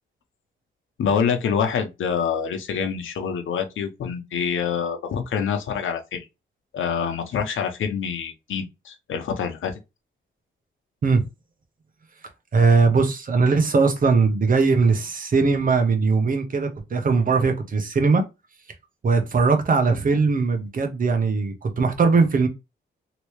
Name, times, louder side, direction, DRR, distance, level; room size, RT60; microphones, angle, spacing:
voice 1, 1.0-6.3 6.7-9.7, left 7 dB, 80° left, 0.9 m, -26 dB
voice 2, 12.5-18.2 19.0-22.5, right 4 dB, 45° right, 1.0 m, -20 dB
3.1 x 3.0 x 3.1 m
cardioid pair, 105°, 20 cm